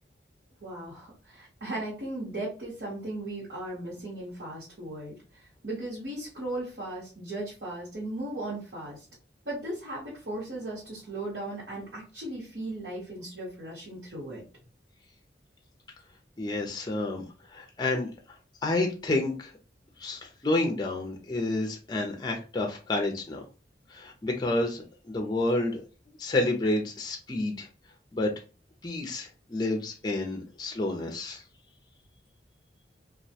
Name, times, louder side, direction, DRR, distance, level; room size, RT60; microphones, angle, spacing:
voice 1, 0.6-9.0 9.4-14.4, right 1 dB, 70° right, -8 dB, 1.1 m, -37 dB
voice 2, 16.4-18.1 18.6-19.5 20.0-23.4 23.9-25.8 26.2-27.7 28.1-28.3 28.8-31.4, left 2 dB, 25° left, 3 dB, 0.4 m, -29 dB
2.3 x 2.1 x 2.6 m, 0.34 s
head